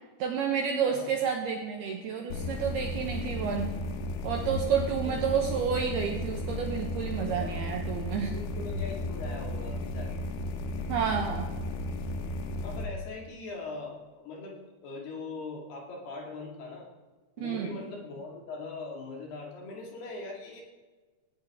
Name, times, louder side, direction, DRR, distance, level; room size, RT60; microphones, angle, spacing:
voice 1, 0.2-3.8 4.2-8.3 10.9-11.5 17.4-17.8, right 7 dB, 70° right, 2 dB, 2.5 m, -30 dB
sound 1, 2.3-12.9, left 2 dB, 75° left, 3.7 m, -34 dB
voice 2, 5.0-5.5 7.4-7.6 8.3-10.2 12.6-16.9 17.4-20.6, left 3 dB, 55° left, -1 dB, 4.0 m, -41 dB
18.0 x 17.5 x 3.7 m, 1.3 s
omnidirectional pair, 5.9 m